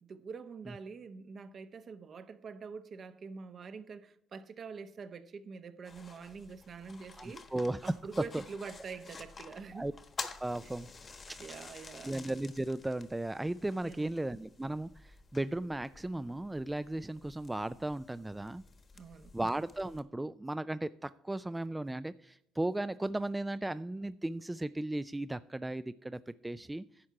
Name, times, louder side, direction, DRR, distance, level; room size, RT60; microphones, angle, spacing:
voice 1, 0.0-7.5 7.8-9.9 10.6-10.7 11.4-12.1 13.8-14.1 18.9-19.3, right 5 dB, 50° right, 0.9 m, -45 dB
sound 1, 5.8-20.0, left 4 dB, 40° left, 1.2 m, -50 dB
voice 2, 7.2-7.9 9.7-9.9 10.4-10.9 11.3-11.4 11.7-18.6 19.3-26.9, right 1 dB, 15° right, 0.3 m, -36 dB
11.0 x 4.6 x 7.5 m
supercardioid pair, 65°, 0 cm